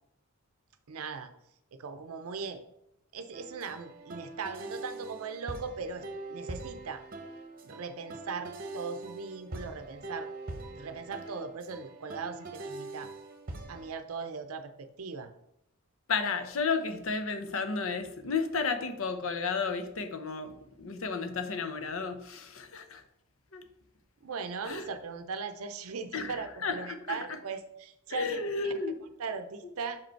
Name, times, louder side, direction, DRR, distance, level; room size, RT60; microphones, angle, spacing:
voice 1, 0.9-1.3 1.7-2.6 3.1-7.0 7.6-10.3 10.7-13.1 13.7-15.3 24.2-28.7 29.2-30.0, right 5 dB, 75° right, 8 dB, 0.6 m, -39 dB
sound 1, 3.3-13.9, right 2 dB, 40° right, 0.9 m, -43 dB
voice 2, 16.1-23.0 23.5-23.6 24.6-24.8 26.1-26.8 27.1-27.4 28.1-29.0, left 4 dB, 65° left, 8 dB, 0.8 m, -33 dB
5.8 x 5.1 x 4.5 m, 0.78 s
head